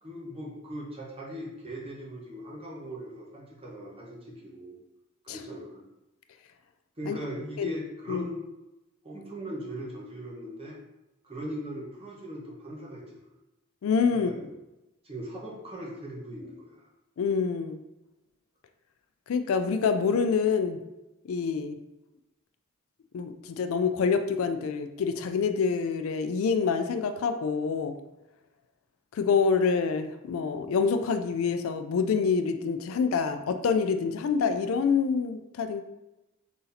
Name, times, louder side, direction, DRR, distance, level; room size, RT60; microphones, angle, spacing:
voice 1, 0.0-4.8 5.2-5.8 7.0-8.4 9.0-10.8 11.2-13.3 14.1-14.4 15.0-16.8, equal, 30° right, -3 dB, 1.0 m, -39 dB
voice 2, 13.8-14.3 17.2-17.8 19.3-20.8 21.2-21.8 23.1-27.9 29.1-35.8, left 5 dB, 70° left, 8 dB, 0.3 m, -26 dB
4.0 x 2.7 x 4.0 m, 0.96 s
head